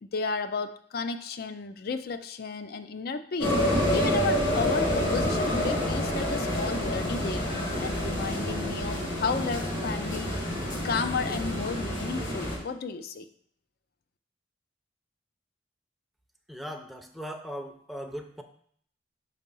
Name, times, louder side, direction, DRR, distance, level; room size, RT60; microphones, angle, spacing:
voice 1, 0.0-7.5 7.8-10.3 10.8-13.3, left 4 dB, 55° left, 11 dB, 0.4 m, -33 dB
sound 1, 3.4-12.6, left 1 dB, 75° left, 2.1 m, -28 dB
voice 2, 16.5-18.4, equal, ahead, 4 dB, 0.5 m, -39 dB
5.3 x 4.2 x 5.3 m, 0.63 s
head